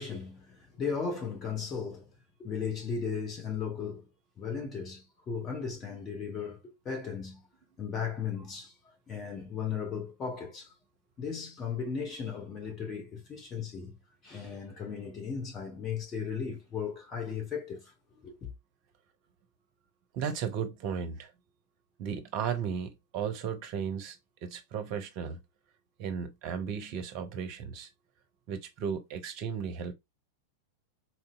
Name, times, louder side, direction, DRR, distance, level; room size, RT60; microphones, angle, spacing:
voice 1, 0.0-2.1 2.4-4.0 4.4-7.4 7.8-8.7 9.1-10.7 11.2-13.9 14.2-17.9 18.2-18.5, left 6 dB, 25° left, 1.0 m, -36 dB
voice 2, 20.1-21.3 22.0-24.2 24.4-25.4 26.0-27.9 28.5-29.9, right 7 dB, 45° right, 0.7 m, -35 dB
4.2 x 2.7 x 2.4 m
figure-of-eight pair, 90°, 0 cm